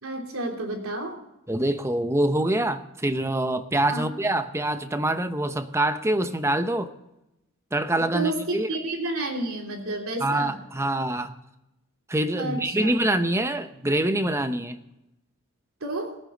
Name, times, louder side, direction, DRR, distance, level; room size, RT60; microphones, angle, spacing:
voice 1, 0.0-1.2 3.9-4.1 8.1-10.6 12.3-12.9 15.8-16.1, right 2 dB, 70° right, 3.2 m, -30 dB
voice 2, 1.5-6.9 7.7-8.7 10.2-11.3 12.1-14.8, right 1 dB, 10° right, 0.8 m, -25 dB
21.5 x 9.0 x 3.9 m
head